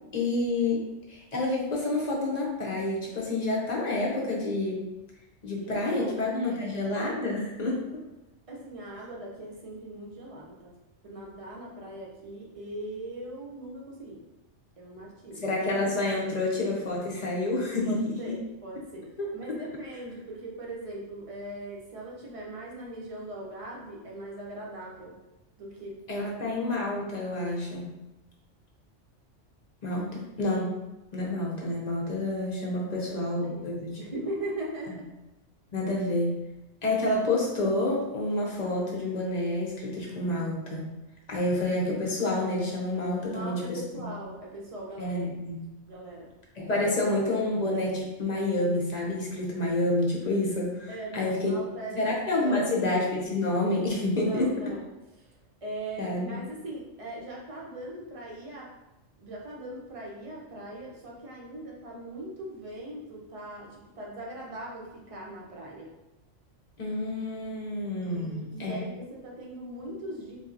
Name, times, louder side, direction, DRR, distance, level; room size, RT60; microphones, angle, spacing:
voice 1, 0.1-0.8 1.1-4.9 5.4-7.9 15.4-18.3 19.2-19.3 26.1-27.8 29.8-30.8 31.1-34.0 35.7-36.4 36.8-40.9 41.3-44.1 45.0-45.6 46.6-51.5 51.9-54.5 56.0-56.4 66.8-68.8, left 2 dB, 40° left, -3 dB, 0.7 m, -28 dB
voice 2, 5.6-6.8 8.5-10.7 11.0-14.2 14.8-15.4 17.9-19.1 19.3-25.1 25.6-26.3 32.8-33.7 34.0-35.0 43.2-45.2 45.9-46.3 50.9-52.0 52.3-52.8 54.1-54.9 55.2-55.3 55.6-58.7 59.2-65.9 68.0-70.4, right 1 dB, 35° right, -3 dB, 0.6 m, -40 dB
3.8 x 2.8 x 2.5 m, 0.98 s
omnidirectional pair, 1.2 m